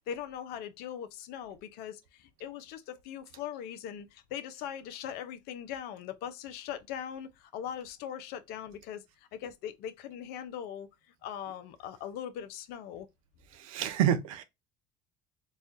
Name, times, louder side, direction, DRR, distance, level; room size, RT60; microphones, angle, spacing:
voice 1, 0.1-9.0 9.3-10.9 11.2-13.1, left 9 dB, 70° left, 0.7 m, -40 dB
voice 2, 13.5-14.4, right 10 dB, 90° right, 0.6 m, -28 dB
4.1 x 2.4 x 2.5 m
hypercardioid pair, 75°, 17 cm